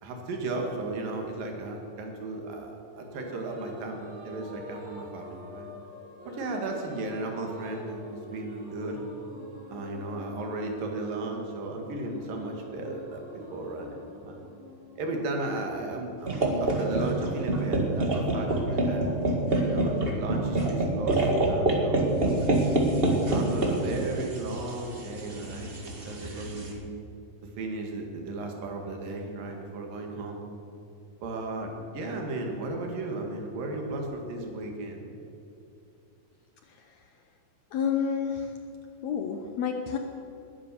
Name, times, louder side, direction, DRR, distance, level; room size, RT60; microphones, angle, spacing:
voice 1, 0.0-5.7 6.3-9.1 9.7-14.4 15.0-19.1 19.6-22.5 23.3-26.8 27.4-30.4 31.2-35.0, right 2 dB, 75° right, 2 dB, 3.7 m, -35 dB
sound 1, 2.9-16.5, left 2 dB, 50° right, 5.7 m, -47 dB
sound 2, 16.3-26.7, right 2 dB, 30° right, 1.0 m, -27 dB
voice 2, 37.7-38.5 39.0-40.0, left 7 dB, 70° left, 5 dB, 1.7 m, -29 dB
20.5 x 9.8 x 7.0 m, 2.7 s
omnidirectional pair, 4.0 m